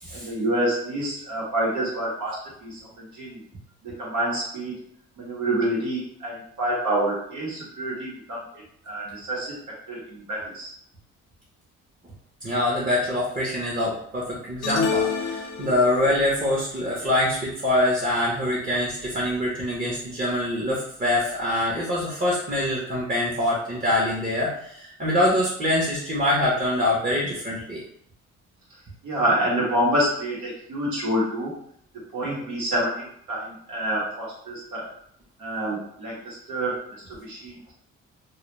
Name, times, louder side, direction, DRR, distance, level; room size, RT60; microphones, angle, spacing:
voice 1, 0.1-3.4 3.8-4.8 5.2-8.4 8.8-9.5 9.9-10.7 29.0-31.5 32.1-34.9 35.4-36.8 37.2-37.7, right 1 dB, 75° right, -5 dB, 1.0 m, -27 dB
voice 2, 12.4-27.8, left 1 dB, 25° right, -5 dB, 0.8 m, -24 dB
sound 1, 14.6-16.2, left 5 dB, 60° left, 0.6 m, -27 dB
2.3 x 2.1 x 3.0 m, 0.67 s
cardioid pair, 90°, 30 cm